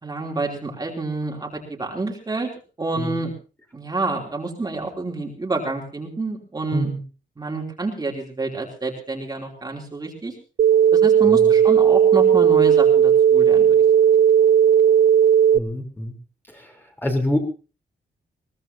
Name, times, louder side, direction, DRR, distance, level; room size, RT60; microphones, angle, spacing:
voice 1, 0.0-2.5 2.8-3.3 3.7-6.9 7.4-10.3 10.9-13.8, right 3 dB, 20° right, 0 dB, 3.2 m, -28 dB
sound 1, 10.6-15.6, right 8 dB, 65° right, 0.8 m, -15 dB
voice 2, 11.2-11.5 15.5-16.1 16.5-16.7 17.0-17.4, left 1 dB, 10° left, 2 dB, 3.8 m, -26 dB
22.0 x 18.0 x 2.9 m, 0.35 s
wide cardioid pair, 125°, 18 cm